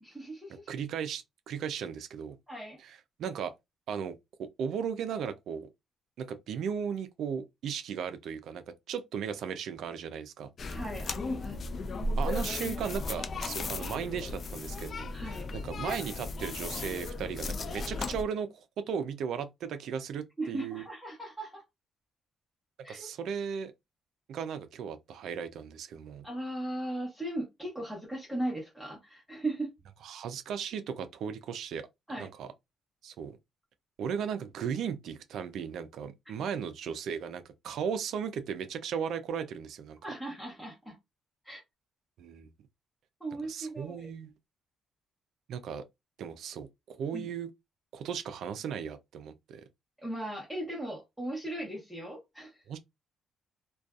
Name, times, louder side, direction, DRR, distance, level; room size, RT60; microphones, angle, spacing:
voice 1, 0.0-0.7 2.5-2.8 10.6-11.8 15.1-15.5 20.4-21.6 22.8-23.1 26.2-29.7 32.1-32.3 40.0-41.0 41.4-41.6 43.2-44.1 47.1-47.3 50.0-52.6, right 1 dB, 5° right, 0.9 m, -38 dB
voice 2, 0.7-2.4 2.8-3.5 3.9-5.7 6.2-10.5 12.2-15.1 15.6-20.8 22.9-23.7 24.3-26.3 30.0-31.9 32.2-32.5 33.0-33.4 34.0-40.0 42.2-42.5 43.5-44.3 45.5-45.8 46.2-47.5 47.9-49.6 52.7-52.8, right 7 dB, 75° right, 0.4 m, -36 dB
sound 1, 10.6-18.2, left 2 dB, 50° left, 0.3 m, -35 dB
2.5 x 2.2 x 2.3 m
cardioid pair, 90°, 0 cm